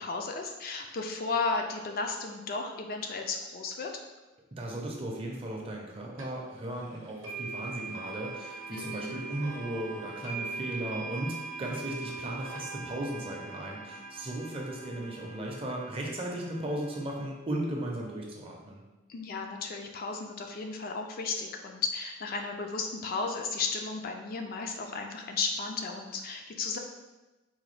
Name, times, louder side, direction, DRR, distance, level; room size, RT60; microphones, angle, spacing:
voice 1, 0.0-3.9 8.7-9.1 19.1-26.8, left 4 dB, 45° left, 3 dB, 0.3 m, -34 dB
voice 2, 4.6-18.8, right 1 dB, 30° right, -1 dB, 0.5 m, -36 dB
sound 1, 6.2-6.3 7.2-17.3, right 3 dB, 80° right, 0.7 m, -41 dB
3.9 x 2.2 x 3.2 m, 1.1 s
head